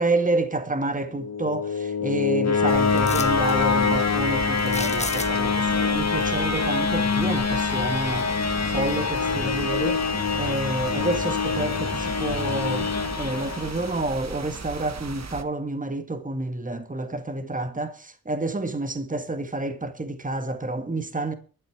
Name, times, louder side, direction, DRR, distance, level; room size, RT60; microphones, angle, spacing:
voice 1, 0.0-8.3 8.6-10.0 10.4-12.9 13.2-21.3, right 2 dB, 25° right, 1.8 m, -29 dB
sound 1, 1.1-14.1, left 5 dB, 50° left, 1.2 m, -25 dB
sound 2, 2.7-15.4, right 4 dB, 50° right, 1.5 m, -37 dB
sound 3, 3.0-3.6 4.6-5.6 8.2-8.3 8.8-9.5 9.8-10.9 11.4-11.5, left 3 dB, 20° left, 0.7 m, -35 dB
12.5 x 6.7 x 8.4 m
wide cardioid pair, 80°, 34 cm